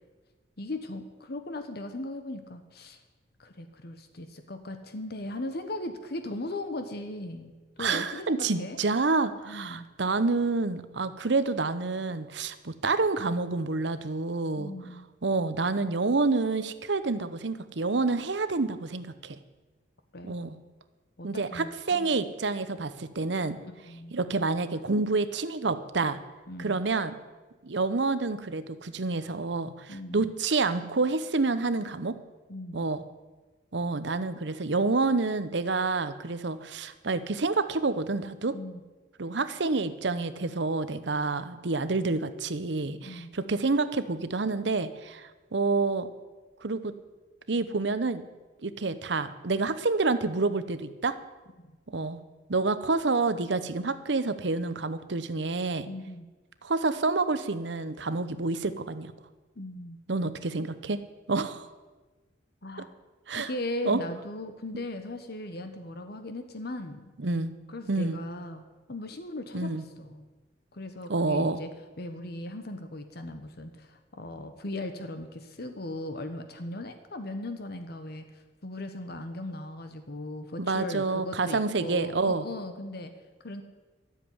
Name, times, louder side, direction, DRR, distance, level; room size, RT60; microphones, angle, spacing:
voice 1, 0.6-3.0 3.4-7.5 7.8-8.8 9.5-9.9 14.6-15.0 20.1-20.3 21.2-22.1 23.6-24.1 26.5-26.8 29.9-30.3 32.5-32.9 38.5-38.8 43.0-43.3 51.6-51.7 55.8-56.3 59.6-60.0 62.6-62.9 63.3-67.1 67.7-68.6 68.9-70.3 70.7-71.7 72.0-83.1 83.4-83.6, left 1 dB, 60° left, 8 dB, 1.1 m, -38 dB
voice 2, 7.8-14.7 15.2-19.4 20.2-20.6 21.2-23.6 24.1-26.2 26.6-27.2 27.6-32.2 32.7-33.0 33.7-38.6 39.2-46.1 46.6-46.9 47.5-48.2 48.6-51.2 51.9-52.2 52.5-55.9 56.6-59.1 60.1-61.0 61.3-61.6 62.8-62.9 63.3-63.5 63.8-64.0 67.2-67.5 67.9-68.2 69.5-69.8 71.1-71.6 80.6-82.5, right 3 dB, 70° right, 13 dB, 0.9 m, -28 dB
13.5 x 7.6 x 9.7 m, 1.3 s
head